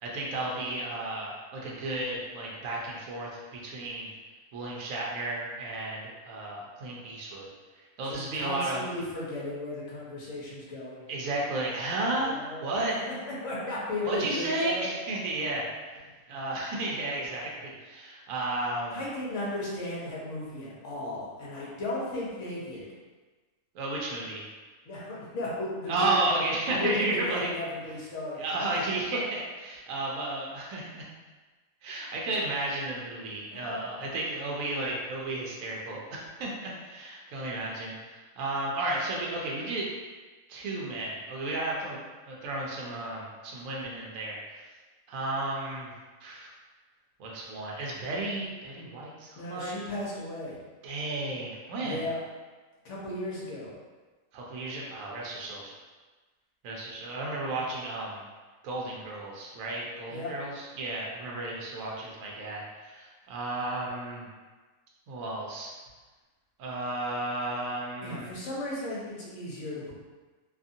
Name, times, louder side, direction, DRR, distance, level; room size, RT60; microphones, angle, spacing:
voice 1, 0.0-4.1 4.5-7.5 8.0-8.9 11.1-13.0 14.0-15.7 16.3-19.0 23.7-24.4 25.9-27.5 28.4-31.1 31.8-39.9 40.5-42.0 42.3-44.6 45.1-45.9 46.2-46.6 47.2-49.8 50.8-52.0 54.3-55.7 56.6-58.2 58.6-64.3 65.1-65.7 66.6-68.3, right 2 dB, 70° right, -3 dB, 0.9 m, -33 dB
voice 2, 8.0-11.0 12.2-12.6 13.3-14.9 18.9-22.9 24.9-26.1 26.6-28.4 33.9-34.0 49.4-50.6 51.8-52.2 52.8-53.7 60.1-60.3 68.0-69.9, left 2 dB, 60° left, -6 dB, 1.1 m, -35 dB
2.8 x 2.5 x 2.6 m, 1.3 s
omnidirectional pair, 1.6 m